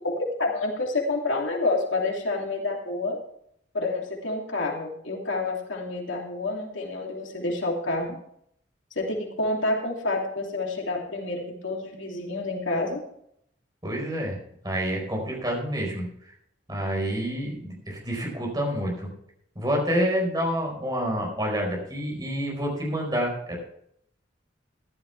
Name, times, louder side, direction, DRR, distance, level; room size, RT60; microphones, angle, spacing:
voice 1, 0.0-3.2 3.7-8.2 8.9-13.0, left 2 dB, 85° left, 0 dB, 2.8 m, -28 dB
voice 2, 13.8-14.4 14.6-16.1 16.7-19.1 19.5-23.6, equal, 20° right, 0 dB, 4.8 m, -28 dB
15.0 x 11.5 x 3.4 m, 0.71 s
head